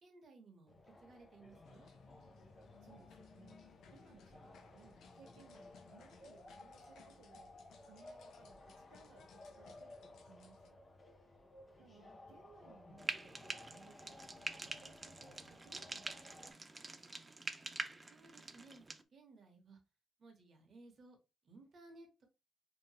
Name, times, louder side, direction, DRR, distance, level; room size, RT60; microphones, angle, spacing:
voice 1, 0.0-1.9 18.1-18.8 19.1-19.8 20.2-21.2 21.4-22.3, right 3 dB, 50° right, 1.0 m, -59 dB
sound 1, 0.7-16.5, left 2 dB, 30° left, 0.6 m, -58 dB
sound 2, 1.6-10.7, left 5 dB, 75° left, 0.6 m, -63 dB
voice 2, 2.8-10.8 11.2-11.4 11.8-17.0, right 5 dB, 90° right, 0.6 m, -64 dB
Frying (food), 13.0-19.0, right 2 dB, 20° right, 0.4 m, -46 dB
2.8 x 2.5 x 2.8 m
cardioid pair, 90°, 0 cm